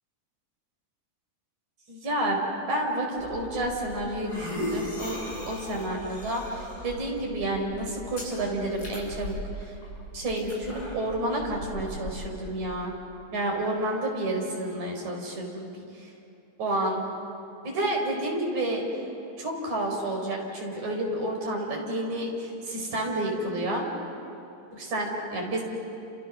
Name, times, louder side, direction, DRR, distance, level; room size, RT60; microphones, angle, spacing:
voice 1, 1.9-2.4 2.7-5.2 5.5-9.7 10.1-12.9 13.3-16.1 16.6-17.0 17.6-18.8 19.4-23.9 24.7-25.6, right 1 dB, 60° right, 0 dB, 5.7 m, -30 dB
sound 1, 3.2-12.7, left 1 dB, 25° left, 7.7 m, -38 dB
30.0 x 28.5 x 6.3 m, 2.8 s
omnidirectional pair, 3.8 m